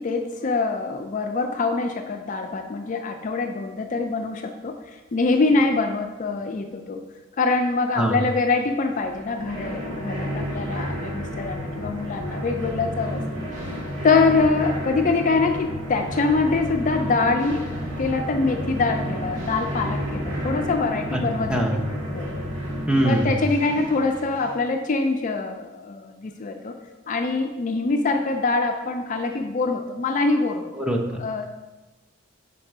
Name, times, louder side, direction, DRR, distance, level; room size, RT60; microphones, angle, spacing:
voice 1, 0.0-4.8 5.1-7.0 7.4-13.2 14.0-21.6 22.1-22.3 23.0-26.7 27.1-30.7 31.2-31.5, left 3 dB, 40° left, 5 dB, 0.4 m, -24 dB
sound 1, 8.9-24.6, equal, 85° right, 1.4 m, -31 dB
sound 2, 17.7-22.9, equal, 40° right, 1.0 m, -38 dB
voice 2, 22.9-23.4 30.7-31.3, right 1 dB, 5° right, -1 dB, 0.6 m, -22 dB
5.3 x 4.4 x 4.9 m, 1.2 s
head